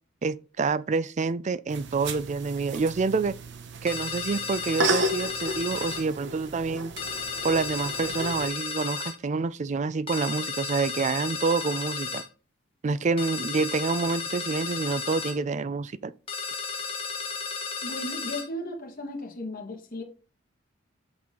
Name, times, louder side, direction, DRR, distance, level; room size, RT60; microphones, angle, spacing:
voice 1, 0.2-3.3 3.8-6.9 7.4-12.2 12.8-16.1, right 4 dB, 35° right, 0.4 m, -27 dB
sound 1, 1.7-8.5, right 1 dB, 60° right, 0.9 m, -33 dB
sound 2, 3.9-6.1 7.0-9.2 10.1-12.3 13.2-15.4 16.3-18.5, left 5 dB, 30° left, 1.3 m, -33 dB
voice 2, 17.8-20.0, left 1 dB, 45° left, 1.7 m, -35 dB
6.2 x 5.9 x 3.7 m
head